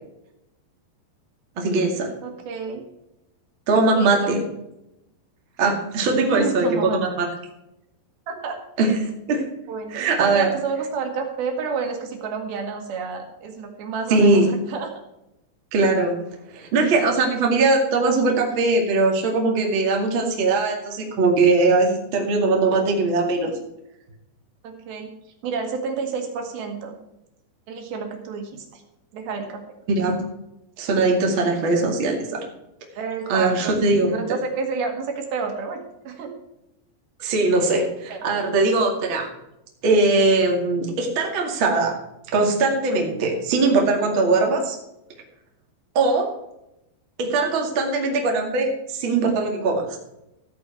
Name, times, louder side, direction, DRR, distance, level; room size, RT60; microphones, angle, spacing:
voice 1, 1.6-2.1 3.7-4.4 5.6-6.7 6.9-7.3 8.8-9.4 9.9-10.5 14.1-14.5 15.7-16.2 16.5-23.5 29.9-30.1 30.8-32.4 33.3-34.2 37.2-39.3 39.8-41.9 42.3-44.8 45.9-46.3 47.2-50.0, right 3 dB, 35° right, 1 dB, 2.2 m, -20 dB
voice 2, 2.2-2.8 4.0-4.4 6.0-7.0 8.3-8.6 9.7-14.9 24.6-25.1 25.4-27.0 27.7-28.8 29.1-29.6 33.0-36.3 38.1-38.2, right 5 dB, 60° right, 4 dB, 3.5 m, -30 dB
14.5 x 8.4 x 4.5 m, 0.88 s
omnidirectional pair, 5.2 m